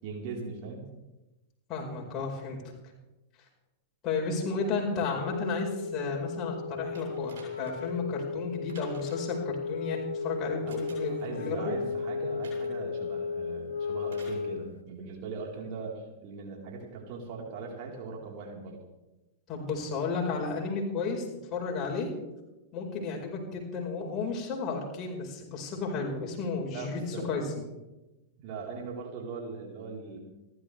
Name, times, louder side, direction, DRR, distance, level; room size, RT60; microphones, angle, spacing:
voice 1, 0.0-0.9 10.6-10.8 11.1-18.8 26.7-27.3 28.4-30.2, right 4 dB, 45° right, -1 dB, 4.1 m, -40 dB
voice 2, 1.7-2.6 4.0-11.7 19.5-21.2 21.5-22.1 22.7-27.6, left 4 dB, 30° left, -1 dB, 4.8 m, -33 dB
Wind instrument woodwind instrument, 5.0-14.8, left 5 dB, 70° left, 0.7 m, -35 dB
sound 1, 6.9-7.9 8.7-9.4 10.7-11.3 12.4-12.8 14.1-14.4 15.5-15.6, right 1 dB, 60° right, 7.8 m, -53 dB
29.0 x 12.5 x 3.4 m, 1.0 s
figure-of-eight pair, 95°, 0 cm